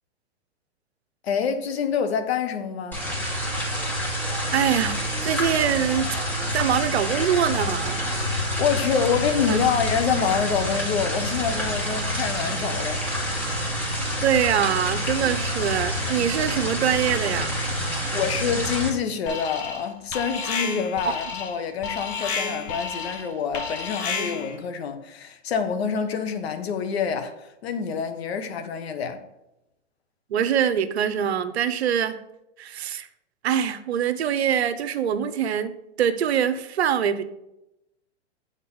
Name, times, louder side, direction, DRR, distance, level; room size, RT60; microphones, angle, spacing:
voice 1, 1.2-3.0 8.6-13.0 18.1-29.2, left 7 dB, 65° left, 1.1 m, -26 dB
sound 1, 2.9-18.9, equal, 5° left, 1.8 m, -27 dB
voice 2, 4.5-6.1 6.5-8.0 9.5-9.6 14.2-17.5 21.0-21.1 30.3-32.2 32.6-33.1 33.4-37.2, right 9 dB, 70° right, 0.7 m, -24 dB
Alarm, 19.3-19.9 20.1-24.6, left 5 dB, 40° left, 1.5 m, -31 dB
7.5 x 4.0 x 5.3 m
hypercardioid pair, 120°, 34 cm